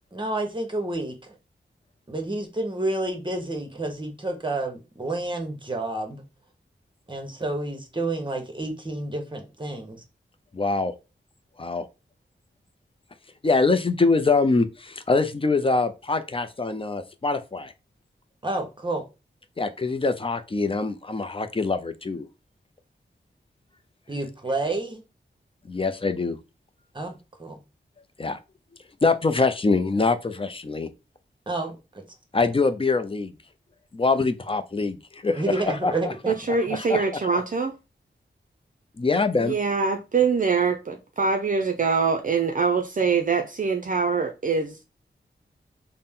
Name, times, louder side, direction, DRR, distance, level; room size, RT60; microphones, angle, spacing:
voice 1, 0.1-1.4 2.1-6.2 7.1-10.0 18.4-19.0 24.1-25.0 26.9-27.6 31.5-32.0 35.4-36.3, right 2 dB, 25° right, 1.0 m, -30 dB
voice 2, 10.5-10.9 11.6-11.8 13.4-17.7 19.6-22.3 25.7-26.4 28.2-28.4 29.0-30.9 32.3-33.3 33.9-35.4 35.8-36.1 36.7-37.1 37.3-37.4 39.0-39.5, left 3 dB, 30° left, 0.5 m, -24 dB
voice 3, 36.3-37.8 39.4-44.9, right 5 dB, 45° right, 0.5 m, -24 dB
4.1 x 2.1 x 3.7 m
wide cardioid pair, 65°, 19 cm